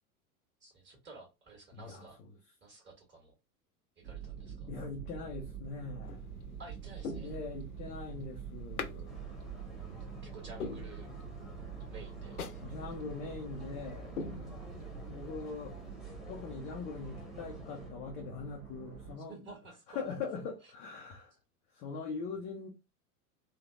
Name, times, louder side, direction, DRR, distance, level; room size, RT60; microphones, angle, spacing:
voice 1, 0.6-2.2 2.6-3.3 4.0-4.7 6.6-7.4 10.2-11.1 11.9-12.4 19.3-20.0 20.6-20.7, right 3 dB, 25° right, 1.5 m, -52 dB
voice 2, 1.7-2.3 4.7-6.3 7.2-9.3 12.6-14.1 15.0-15.8 16.3-19.3 19.9-21.3 21.7-22.7, left 4 dB, 20° left, 0.3 m, -42 dB
sound 1, 4.0-19.2, right 7 dB, 65° right, 1.0 m, -46 dB
sound 2, 6.0-6.4 7.0-7.9 8.8-9.0 9.4-9.5 10.0-10.1 10.6-11.5 11.8-11.9 12.4-12.7 13.0-13.1 13.6-13.8 14.2-15.0 15.4-15.5, left 4 dB, 80° left, 0.6 m, -42 dB
sound 3, 9.1-17.9, left 2 dB, ahead, 0.9 m, -52 dB
3.2 x 2.7 x 2.4 m
figure-of-eight pair, 90°, 45 cm